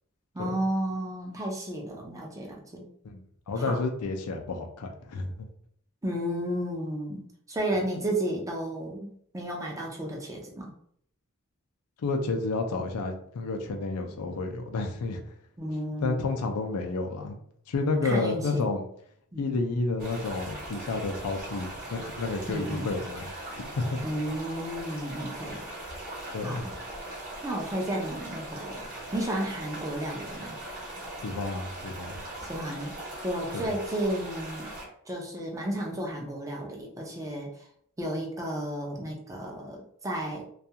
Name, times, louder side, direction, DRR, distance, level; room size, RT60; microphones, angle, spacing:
voice 1, 0.3-2.9 3.6-3.8 6.0-7.2 7.5-10.7 15.6-16.2 18.0-18.7 19.3-19.5 22.5-22.9 24.0-25.6 26.4-26.7 27.4-30.6 32.4-32.9 33.2-34.7 35.1-37.5 38.0-40.5, right 1 dB, 15° right, -1 dB, 0.5 m, -33 dB
voice 2, 3.5-5.5 12.0-15.2 16.0-17.4 17.7-18.8 19.4-23.3 23.5-24.0 26.3-26.6 31.2-32.2 33.5-33.7, left 3 dB, 80° left, 4 dB, 0.5 m, -30 dB
sound 1, 20.0-34.8, right 1 dB, 40° right, 0.9 m, -40 dB
2.3 x 2.3 x 2.7 m, 0.65 s
head